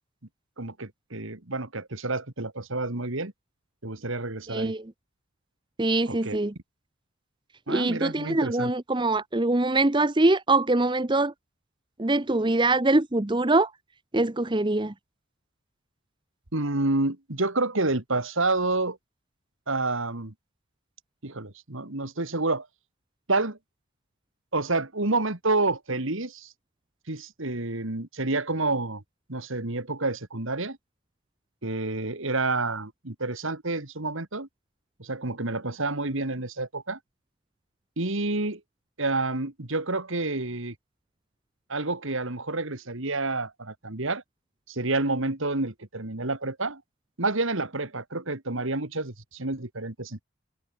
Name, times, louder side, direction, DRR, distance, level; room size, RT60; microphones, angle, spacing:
voice 1, 0.6-3.3 3.8-4.7 6.1-6.4 7.7-8.7 16.5-19.0 19.7-20.3 21.2-22.7 23.3-23.6 24.5-26.5 27.1-29.0 29.3-30.8 31.6-34.5 35.0-37.0 38.0-38.6 39.0-40.7 41.7-44.2 44.7-46.8 47.2-50.2, right 2 dB, 60° right, 2.2 m, -29 dB
voice 2, 4.5-4.9 5.8-6.5 7.7-11.3 12.0-13.7 14.1-14.9, right 2 dB, 20° right, 0.8 m, -23 dB
head